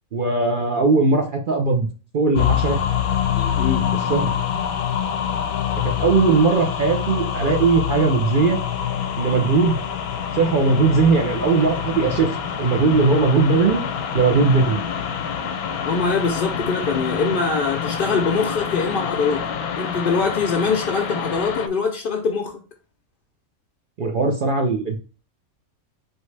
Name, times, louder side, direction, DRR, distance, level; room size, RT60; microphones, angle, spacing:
voice 1, 0.1-1.9 2.1-2.8 3.9-4.3 5.8-8.6 9.2-9.8 10.3-12.3 12.6-13.8 14.1-14.8 24.0-25.0, right 4 dB, 55° right, 0.5 m, -19 dB
sound 1, 2.4-21.7, left 8 dB, 85° left, 1.1 m, -26 dB
voice 2, 3.4-3.9 15.8-19.4 19.8-22.6, left 4 dB, 60° left, 0.5 m, -23 dB
4.5 x 3.1 x 3.2 m
omnidirectional pair, 1.5 m